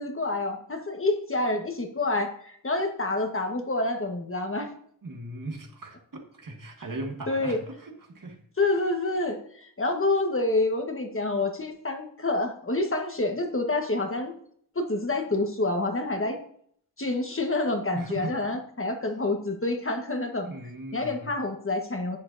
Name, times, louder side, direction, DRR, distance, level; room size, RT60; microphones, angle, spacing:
voice 1, 0.0-4.7 7.3-7.6 8.6-14.3 14.7-16.4 17.0-20.5 20.9-22.2, left 2 dB, 35° left, 4 dB, 1.5 m, -28 dB
voice 2, 5.0-8.4 17.9-18.6 20.4-21.3, right 2 dB, 60° right, 2 dB, 1.7 m, -38 dB
11.0 x 7.8 x 2.7 m, 0.63 s
wide cardioid pair, 75°, 36 cm